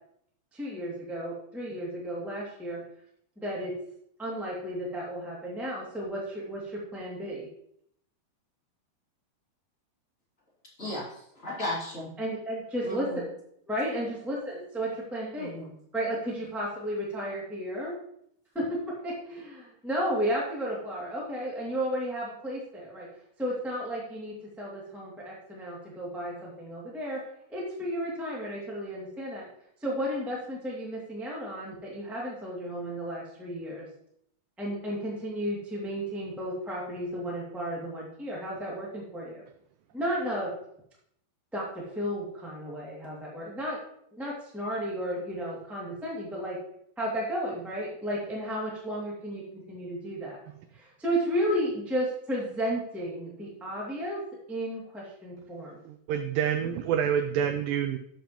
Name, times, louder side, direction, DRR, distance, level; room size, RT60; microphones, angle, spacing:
voice 1, 0.5-2.8 3.4-3.7 4.2-7.5 12.2-13.3 13.7-15.5 15.9-18.0 18.5-18.6 19.0-23.1 23.4-27.2 27.5-29.4 29.8-33.9 34.6-39.4 39.9-40.5 41.5-41.6 41.9-43.8 44.1-46.6 47.0-50.4 50.7-54.2 54.5-55.8, equal, ahead, -5 dB, 0.9 m, -33 dB
voice 2, 10.8-12.1 12.8-13.2 15.4-15.7, left 1 dB, 20° left, -7 dB, 2.7 m, -35 dB
voice 3, 55.9-58.0, right 8 dB, 80° right, 7 dB, 2.0 m, -27 dB
12.5 x 7.1 x 3.0 m, 0.71 s
omnidirectional pair, 4.5 m